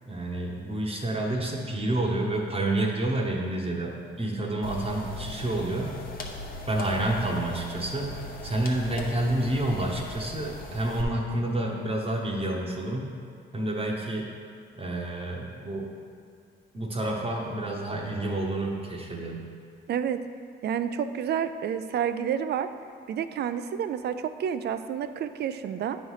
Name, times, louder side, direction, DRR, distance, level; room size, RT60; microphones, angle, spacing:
voice 1, 0.1-5.9 6.7-8.1 8.4-13.1 13.5-14.3 14.8-15.9 16.7-19.5, right 1 dB, 30° right, -2 dB, 0.9 m, -29 dB
sound 1, 4.6-11.0, left 2 dB, 45° left, 0.9 m, -39 dB
voice 2, 19.9-20.2 20.6-22.7 23.1-26.0, right 8 dB, 55° right, 11 dB, 0.4 m, -29 dB
9.1 x 3.2 x 5.5 m, 2.2 s
cardioid pair, 90°, 20 cm